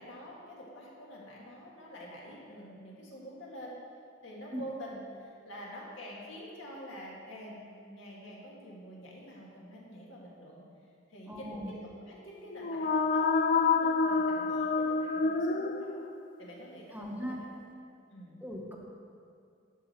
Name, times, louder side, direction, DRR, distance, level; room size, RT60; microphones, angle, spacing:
voice 1, 0.0-3.8 4.2-10.6 11.1-16.0 16.4-17.6 18.1-18.4, equal, 75° left, -3 dB, 1.8 m, -47 dB
voice 2, 11.3-11.7 16.9-17.4 18.4-18.8, equal, 10° right, 0 dB, 0.9 m, -38 dB
sound 1, 12.5-16.3, left 4 dB, 45° left, 0.4 m, -28 dB
10.5 x 6.2 x 4.4 m, 2.4 s
head